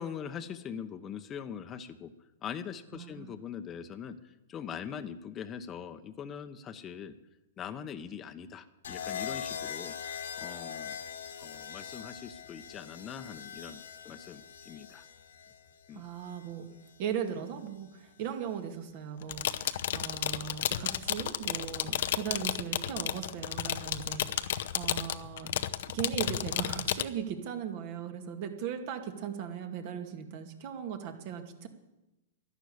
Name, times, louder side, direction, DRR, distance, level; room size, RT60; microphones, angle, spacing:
voice 1, 0.0-2.1 2.4-4.2 4.5-7.1 7.6-9.9 10.4-11.0 11.4-15.1 15.9-16.0, left 8 dB, 25° left, 8 dB, 1.0 m, -42 dB
voice 2, 2.9-3.3 15.9-16.7 17.0-25.5 25.9-31.7, right 8 dB, 50° right, 6 dB, 2.2 m, -38 dB
sound 1, 8.8-17.0 18.2-18.6, left 8 dB, 80° left, 1.8 m, -42 dB
sound 2, 19.2-27.0, left 11 dB, 65° left, 0.8 m, -32 dB
12.0 x 11.0 x 8.5 m, 1.0 s
hypercardioid pair, 120°, 0 cm